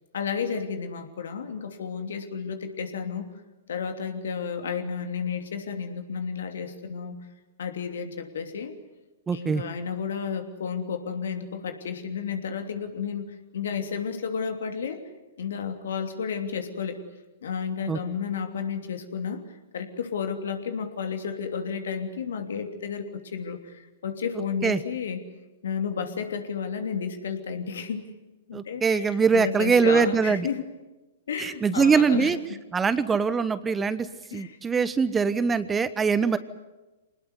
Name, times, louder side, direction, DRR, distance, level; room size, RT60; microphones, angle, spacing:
voice 1, 0.1-3.3 3.7-7.2 7.6-8.8 9.3-15.0 15.4-17.0 17.4-19.4 19.7-25.2 25.6-28.0 28.5-30.6 31.3-32.6 34.3-34.6, left 6 dB, 70° left, 7 dB, 3.0 m, -32 dB
voice 2, 9.3-9.6 17.9-18.0 24.6-24.8 28.5-30.5 31.4-32.4 32.7-34.1 34.3-36.4, right 5 dB, 15° right, 14 dB, 1.0 m, -23 dB
25.5 x 19.5 x 9.7 m, 1.1 s
figure-of-eight pair, 115°, 0 cm